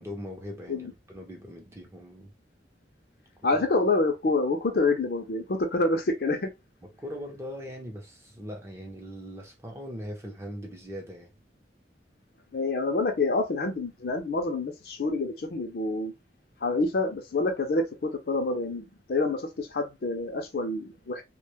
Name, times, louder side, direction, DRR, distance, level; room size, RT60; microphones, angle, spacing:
voice 1, 0.0-2.3 3.4-3.6 7.0-11.3, equal, 15° right, 0.5 m, -40 dB
voice 2, 3.4-6.5 12.5-16.1 16.6-21.2, left 3 dB, 60° left, 0.5 m, -27 dB
2.2 x 2.0 x 2.8 m
head